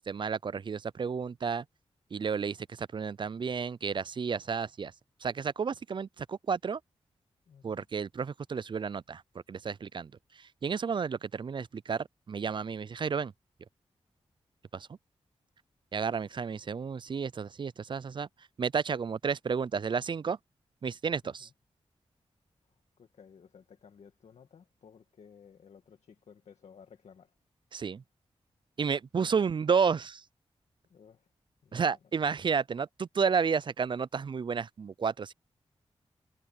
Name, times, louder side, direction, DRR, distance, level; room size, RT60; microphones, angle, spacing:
voice 1, 0.0-1.7 2.1-4.9 5.2-6.8 7.6-9.2 9.5-13.3 14.7-14.9 15.9-20.4 20.8-21.5 27.7-28.0 28.8-30.2 31.7-35.3, right 6 dB, 45° right, 0.4 m, -31 dB
voice 2, 7.5-7.9 21.2-21.5 22.6-27.4 30.9-31.3 31.6-32.0, left 6 dB, 85° left, 1.9 m, -56 dB
cardioid pair, 70°, 11 cm